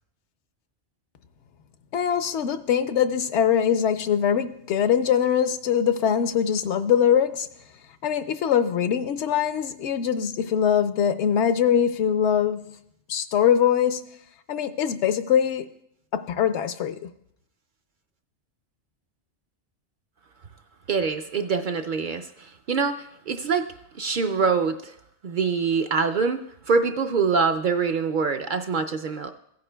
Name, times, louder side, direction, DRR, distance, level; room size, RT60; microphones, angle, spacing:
voice 1, 1.9-7.5 8.0-12.7 13.1-14.0 14.5-15.7 16.1-17.1, left 8 dB, 80° left, 11 dB, 0.9 m, -22 dB
voice 2, 20.9-23.6 24.0-24.9 25.2-26.4 26.7-29.3, right 5 dB, 60° right, 7 dB, 0.5 m, -24 dB
16.0 x 9.3 x 2.2 m, 0.74 s
omnidirectional pair, 1.2 m